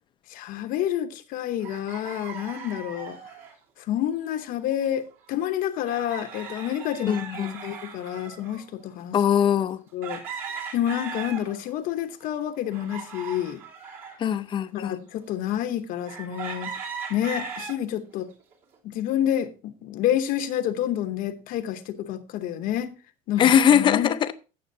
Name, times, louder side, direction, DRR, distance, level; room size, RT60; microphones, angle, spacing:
voice 1, 0.3-3.2 3.8-9.2 9.9-10.2 10.7-13.6 14.7-16.8 17.1-18.3 18.8-23.0 23.3-24.1, left 11 dB, 50° left, 0.9 m, -29 dB
sound 1, 1.6-3.5 4.7-4.8 5.1-5.2 5.9-8.7 9.2-9.3 10.0-11.8 12.2-14.2 14.8-14.9 16.1-17.8 18.3-18.7, right 5 dB, 50° right, 3.0 m, -38 dB
voice 2, 7.1-7.5 9.1-9.8 14.2-15.0 23.4-24.3, left 8 dB, 25° left, 0.5 m, -21 dB
16.0 x 7.0 x 2.7 m
cardioid pair, 170°, 19 cm